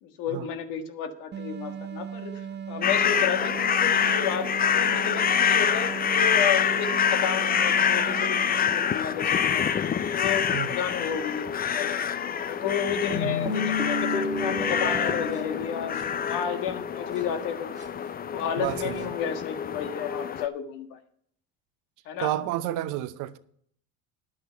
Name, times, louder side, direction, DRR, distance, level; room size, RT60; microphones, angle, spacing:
voice 1, 0.0-9.6 10.1-12.0 12.4-17.8 18.3-21.0 22.1-22.3, left 8 dB, 70° left, 1.6 m, -32 dB
sound 1, 1.3-9.4, right 7 dB, 30° right, 0.8 m, -38 dB
sound 2, 2.8-20.5, left 8 dB, 25° left, 0.5 m, -26 dB
sound 3, 13.1-16.7 17.2-17.3 17.8-17.9 18.6-19.0, left 3 dB, 10° right, 1.8 m, -32 dB
voice 2, 18.6-19.1 22.2-23.4, right 14 dB, 65° right, 0.8 m, -31 dB
10.5 x 8.6 x 5.6 m
supercardioid pair, 85°, 34 cm